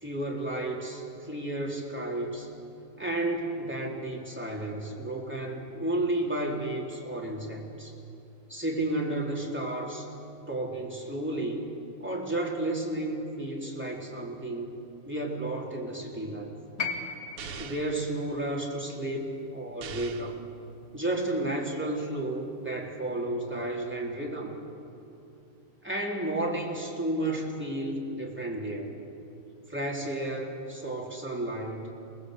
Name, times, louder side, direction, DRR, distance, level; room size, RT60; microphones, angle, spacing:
voice 1, 0.0-2.5 3.0-8.0 8.5-10.1 10.5-11.6 12.0-14.7 15.1-16.5 17.6-20.4 20.9-24.5 25.8-28.9 29.7-31.9, right 1 dB, 5° right, -2 dB, 3.6 m, -32 dB
sound 1, 16.8-21.0 22.2-22.3, left 5 dB, 40° left, 2.2 m, -39 dB
sound 2, 17.4-18.0 19.8-20.4, right 6 dB, 85° right, 2.1 m, -41 dB
28.0 x 20.0 x 8.2 m, 2.8 s
omnidirectional pair, 2.4 m